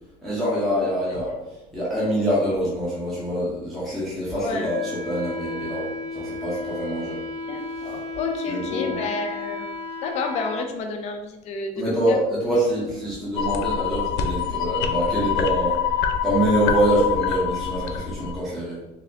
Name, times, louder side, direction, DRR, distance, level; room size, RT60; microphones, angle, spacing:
voice 1, 0.2-1.3 1.7-7.2 8.5-9.0 11.8-15.8 16.2-18.8, right 1 dB, ahead, -9 dB, 0.9 m, -25 dB
voice 2, 4.3-4.8 7.5-12.2, left 3 dB, 45° left, 4 dB, 0.6 m, -30 dB
Wind instrument woodwind instrument, 4.5-10.6, left 2 dB, 50° right, 0.8 m, -34 dB
sound 1, 13.3-18.4, left 8 dB, 90° left, 0.5 m, -25 dB
4.1 x 3.5 x 2.8 m, 1.0 s
cardioid pair, 175°, 16 cm